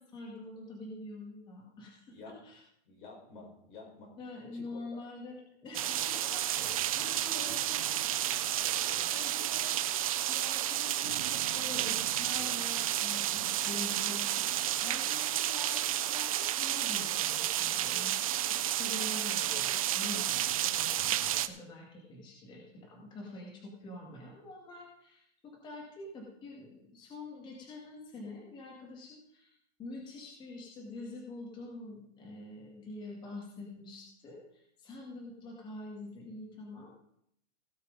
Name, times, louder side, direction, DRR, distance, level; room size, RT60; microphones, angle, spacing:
voice 1, 0.0-2.6 4.2-5.4 5.6-8.2 8.6-14.3 14.8-29.5 29.8-36.9, left 2 dB, 15° left, -1 dB, 2.0 m, -46 dB
voice 2, 2.8-4.1 4.5-5.0 8.6-9.2, left 3 dB, 45° left, 0 dB, 4.6 m, -51 dB
sound 1, 5.7-21.5, right 12 dB, 35° right, 0.4 m, -31 dB
16.5 x 6.5 x 5.2 m, 0.72 s
supercardioid pair, 175°, 33 cm